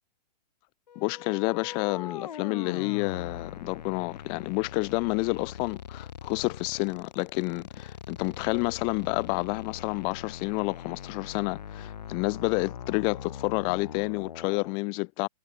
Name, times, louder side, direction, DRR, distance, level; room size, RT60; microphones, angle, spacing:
sound 1, 0.9-14.7, left 8 dB, 85° left, 3.2 m, -42 dB
voice 1, 0.9-15.3, left 33 dB, 20° left, 1.5 m, -29 dB
hypercardioid pair, 175°, 21 cm